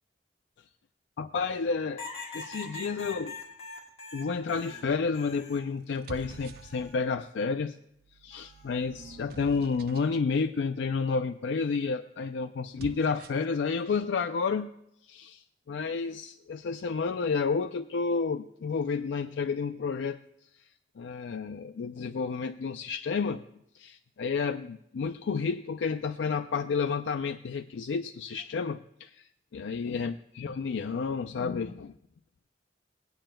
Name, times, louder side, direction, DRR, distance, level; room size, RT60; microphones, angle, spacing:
voice 1, 1.2-2.1 2.3-3.4 4.1-7.8 8.2-14.7 15.1-20.2 21.0-23.4 23.7-29.2 29.5-31.9, left 5 dB, 85° left, 8 dB, 0.4 m, -31 dB
sound 1, 2.0-5.7 6.1-6.9 8.3-8.7, left 3 dB, 35° left, 1.6 m, -43 dB
sound 2, 4.6-5.0 5.8-7.2 7.9-10.3 12.6-13.6, right 5 dB, 60° right, 0.4 m, -48 dB
21.5 x 8.8 x 2.2 m, 0.78 s
head